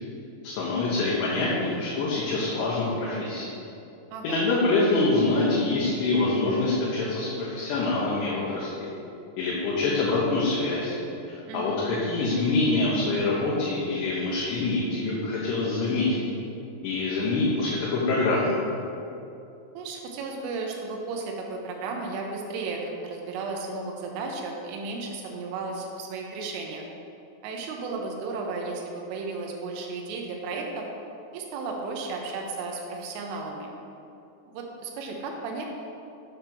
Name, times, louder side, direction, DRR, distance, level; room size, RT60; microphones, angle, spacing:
voice 1, 0.4-3.5 4.2-8.9 9.4-11.0 11.3-16.2 16.8-18.6, left 3 dB, 75° left, -6 dB, 2.7 m, -25 dB
voice 2, 19.7-26.9 27.4-30.9 31.3-33.7 34.5-35.7, right 3 dB, 85° right, 1 dB, 3.3 m, -34 dB
8.6 x 3.4 x 5.9 m, 2.7 s
omnidirectional pair, 5.6 m